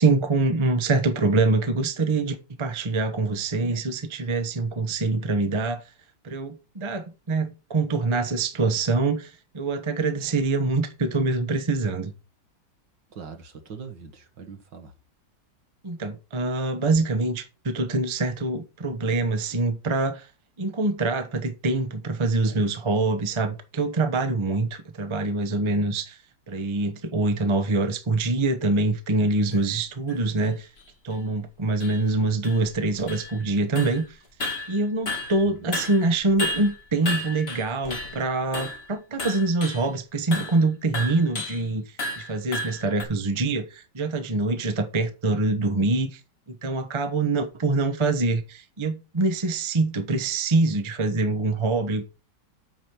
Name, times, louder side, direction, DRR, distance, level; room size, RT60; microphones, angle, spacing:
voice 1, 0.0-5.8 6.2-12.1 15.8-20.2 20.6-26.2 26.5-30.7 31.0-34.0 34.7-41.8 42.2-46.2 46.5-52.0, right 3 dB, 25° right, 0.7 m, -25 dB
voice 2, 13.1-14.9 35.4-35.7, right 5 dB, 70° right, 2.3 m, -42 dB
sound 1, 29.5-29.6 30.1-30.2 30.8-30.9 31.1-31.2 31.8-32.0 32.4-33.5 33.8-34.1 34.4-35.5 35.7-38.2 38.5-38.9 39.2-39.9 40.3-40.6 40.9-41.6 42.0-43.1, left 1 dB, 35° left, 1.8 m, -33 dB
8.6 x 5.1 x 6.0 m
omnidirectional pair, 2.0 m